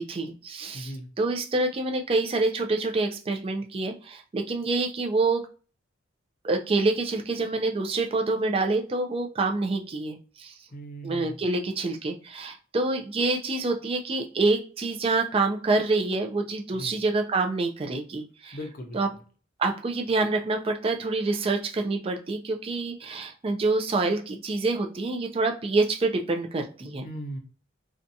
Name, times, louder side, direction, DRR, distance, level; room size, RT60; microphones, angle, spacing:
voice 1, 0.0-5.4 6.4-10.5 11.0-18.6 18.9-19.1 19.6-27.1, right 3 dB, 30° right, 5 dB, 0.4 m, -27 dB
voice 2, 0.7-1.1 10.7-11.3 16.7-16.9 18.5-19.0 27.0-27.4, equal, 45° left, 4 dB, 0.6 m, -37 dB
2.6 x 2.2 x 2.6 m, 0.38 s
head